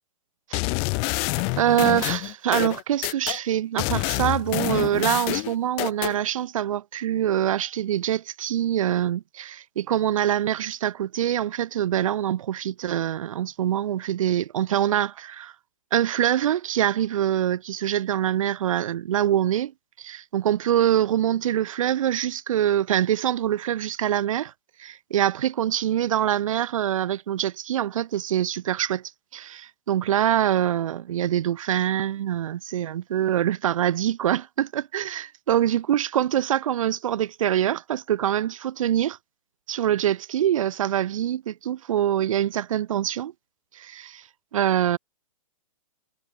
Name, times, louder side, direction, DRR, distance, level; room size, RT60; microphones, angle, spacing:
sound 1, 0.5-3.4 3.8-6.2, left 35 dB, 30° left, 1.4 m, -27 dB
voice 1, 1.6-15.5 15.9-19.7 20.0-24.5 24.8-29.0 29.3-39.2 39.7-43.3 43.7-44.2 44.5-45.0, right 11 dB, 60° right, 7.5 m, -24 dB
hypercardioid pair, 155°, 19 cm